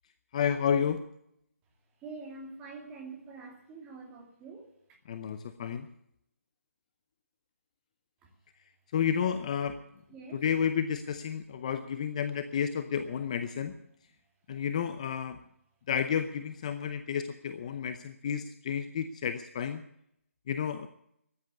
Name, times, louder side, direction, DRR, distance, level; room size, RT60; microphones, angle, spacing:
voice 1, 0.3-1.0 5.1-5.9 8.9-9.8 10.3-13.7 14.5-15.4 15.9-19.8 20.5-20.9, left 8 dB, 25° left, 0.7 m, -31 dB
voice 2, 2.0-4.7 8.2-8.3 10.1-10.4, right 4 dB, 10° right, 2.4 m, -45 dB
14.0 x 10.5 x 8.3 m
hypercardioid pair, 170°, 8 cm